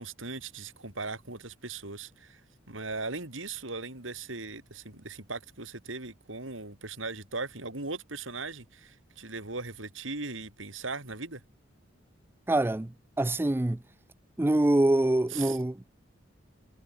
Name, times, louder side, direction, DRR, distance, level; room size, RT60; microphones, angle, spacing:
voice 1, 0.0-2.4 2.7-11.4 15.3-15.6, right 3 dB, 80° right, 4.9 m, -38 dB
voice 2, 12.5-12.9 13.2-13.8 14.4-15.8, right 1 dB, 10° right, 0.4 m, -25 dB
head